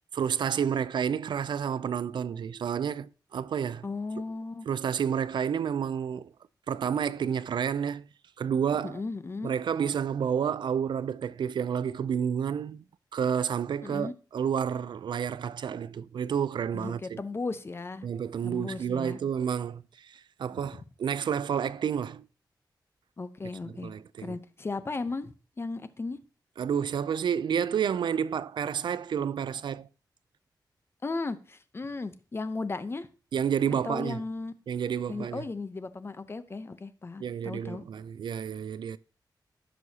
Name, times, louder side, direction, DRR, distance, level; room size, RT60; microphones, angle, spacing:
voice 1, 0.1-3.9 4.7-6.3 6.7-8.1 8.4-9.0 9.4-12.8 13.1-17.2 18.0-22.3 23.8-24.4 26.6-29.9 33.3-34.2 34.7-35.4 37.2-39.0, right 8 dB, 80° right, 0.4 m, -30 dB
voice 2, 3.8-4.7 8.8-9.5 13.8-14.1 16.7-18.1 18.4-19.2 23.2-23.9 24.2-26.2 31.0-33.1 33.8-34.5 35.1-37.8, left 3 dB, 30° left, 0.7 m, -36 dB
15.5 x 6.2 x 2.8 m
wide cardioid pair, 135°, 8 cm